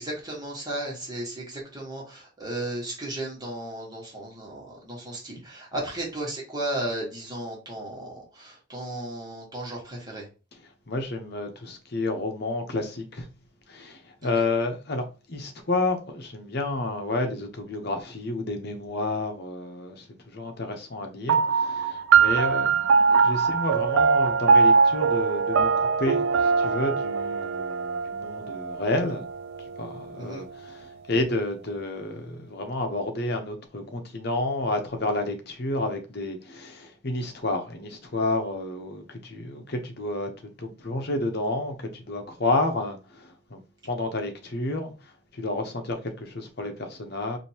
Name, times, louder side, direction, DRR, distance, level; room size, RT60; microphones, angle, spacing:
voice 1, 0.0-10.3 30.2-30.4, right 1 dB, 20° right, 1.5 m, -34 dB
voice 2, 10.9-13.3 13.7-29.3 29.6-40.3 40.6-44.9 45.3-47.4, left 2 dB, 55° left, 0.9 m, -30 dB
sound 1, 21.3-30.1, right 5 dB, 75° right, 0.3 m, -22 dB
5.0 x 2.7 x 2.9 m
head